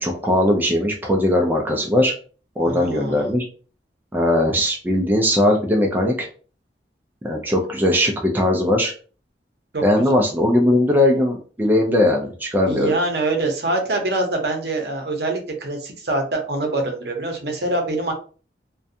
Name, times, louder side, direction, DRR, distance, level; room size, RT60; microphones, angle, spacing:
voice 1, 0.0-2.1 2.6-3.4 4.1-6.3 7.2-8.9 9.8-12.9, left 1 dB, 10° right, 0 dB, 0.3 m, -19 dB
voice 2, 2.6-3.3 9.7-9.8 12.7-18.1, right 2 dB, 65° right, 3 dB, 0.7 m, -24 dB
2.5 x 2.2 x 2.6 m, 0.39 s
head